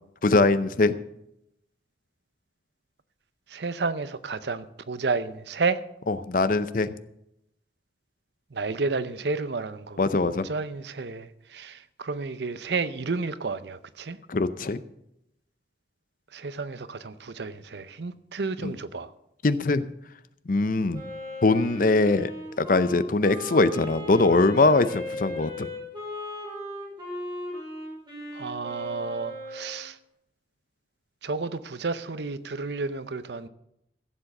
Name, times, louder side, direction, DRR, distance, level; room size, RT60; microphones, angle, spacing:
voice 1, 0.2-0.9 6.1-6.9 10.0-10.5 14.3-14.8 18.6-18.7 19.4-19.9 20.5-21.0 21.4-22.3 22.6-25.7, left 3 dB, 50° left, 13 dB, 0.6 m, -22 dB
voice 2, 3.5-5.8 8.5-10.0 10.4-14.2 16.3-19.1 28.3-30.0 31.2-33.5, right 4 dB, 70° right, 14 dB, 0.7 m, -31 dB
Wind instrument woodwind instrument, 20.9-29.8, left 1 dB, 25° right, 6.5 m, -37 dB
15.5 x 7.4 x 6.5 m, 0.83 s
head